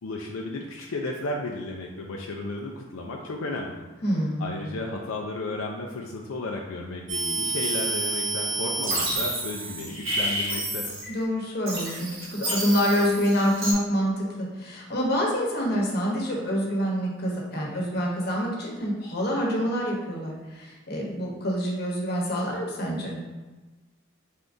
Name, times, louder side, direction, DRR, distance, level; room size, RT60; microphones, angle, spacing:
voice 1, 0.0-3.8 4.4-10.9, left 2 dB, 90° left, 0 dB, 0.4 m, -33 dB
voice 2, 4.0-4.6 11.1-23.2, equal, 50° left, -2 dB, 1.0 m, -27 dB
sound 1, 7.1-11.2 11.7-13.7, right 2 dB, 80° right, 1.1 m, -29 dB
4.3 x 3.6 x 2.6 m, 1.2 s
head